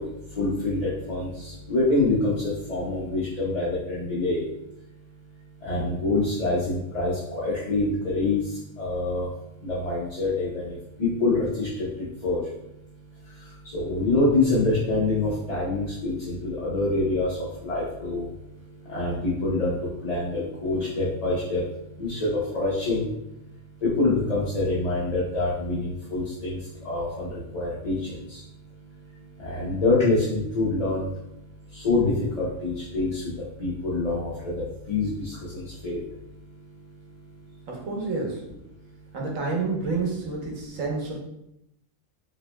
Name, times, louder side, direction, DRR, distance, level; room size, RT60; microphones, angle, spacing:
voice 1, 0.4-1.3 1.7-2.3 2.7-4.4 5.6-8.4 8.8-9.3 9.6-10.6 11.0-11.9 12.2-12.4 13.7-17.3 17.6-18.3 18.9-19.8 20.0-21.6 22.0-23.1 23.8-26.6 26.8-27.3 27.5-28.0 29.4-31.1 31.8-33.3 33.6-34.5 34.9-36.0, left 2 dB, 35° left, -8 dB, 0.8 m, -25 dB
voice 2, 37.7-38.4 39.1-41.2, right 3 dB, 80° right, -2 dB, 1.4 m, -29 dB
4.8 x 3.0 x 2.2 m, 0.82 s
omnidirectional pair, 1.3 m